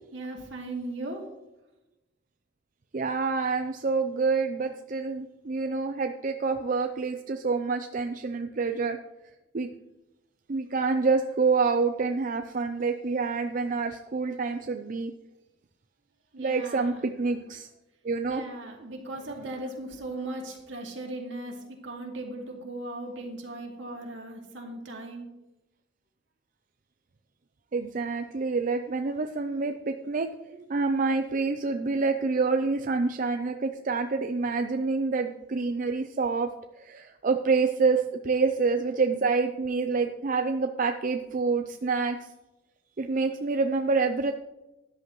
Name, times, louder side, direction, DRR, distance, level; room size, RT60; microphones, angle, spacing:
voice 1, 0.1-1.3 16.3-17.0 18.3-25.3, right 2 dB, 75° right, 1 dB, 2.2 m, -38 dB
voice 2, 2.9-9.0 9.5-9.7 10.5-15.1 16.4-17.7 18.0-18.4 27.7-36.5 36.8-42.2 43.0-44.3, right 4 dB, 45° right, 6 dB, 0.5 m, -27 dB
13.0 x 10.5 x 3.1 m, 0.97 s
head